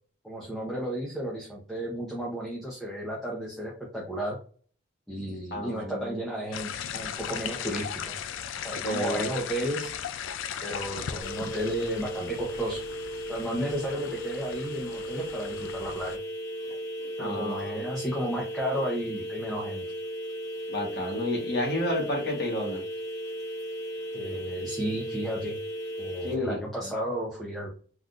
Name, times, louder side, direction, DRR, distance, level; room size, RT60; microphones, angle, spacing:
voice 1, 0.2-4.4 5.1-8.1 8.6-10.0 10.6-12.8 13.3-16.2 17.2-19.8 24.1-25.6 26.0-27.7, right 1 dB, ahead, -4 dB, 0.6 m, -33 dB
voice 2, 5.5-6.2 8.8-9.3 17.2-17.8 20.7-22.8 26.2-26.6, left 1 dB, 55° left, -1 dB, 1.1 m, -30 dB
sound 1, 6.5-16.2, left 8 dB, 85° left, 0.3 m, -37 dB
sound 2, 11.2-26.3, equal, 35° left, 1.6 m, -36 dB
3.6 x 2.5 x 2.4 m, 0.42 s
head